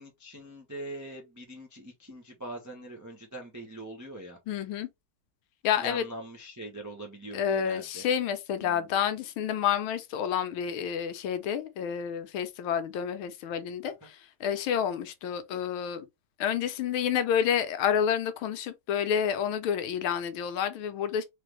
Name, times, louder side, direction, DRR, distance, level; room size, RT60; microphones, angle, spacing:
voice 1, 0.0-4.4 5.8-8.0 8.6-8.9 14.0-14.1, right 1 dB, 20° right, 0.4 m, -42 dB
voice 2, 4.5-4.9 5.6-6.0 7.3-16.0 16.4-21.2, left 8 dB, 80° left, 1.5 m, -29 dB
3.8 x 3.3 x 3.1 m
omnidirectional pair, 2.3 m